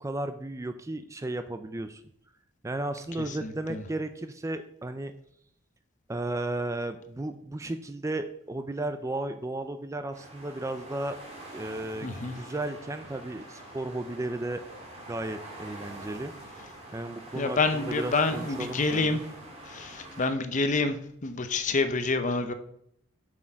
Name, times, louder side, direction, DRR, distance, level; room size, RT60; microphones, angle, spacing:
voice 1, 0.0-2.0 2.6-5.1 6.1-11.2 11.5-14.6 15.1-16.3 16.9-19.2, right 2 dB, 15° right, 9 dB, 0.4 m, -34 dB
voice 2, 3.3-3.8 12.0-12.3 17.3-19.2 19.6-22.5, left 3 dB, 40° left, 9 dB, 0.7 m, -28 dB
sound 1, 10.1-20.3, right 1 dB, 30° right, 2.0 m, -45 dB
7.5 x 6.3 x 4.5 m, 0.70 s
head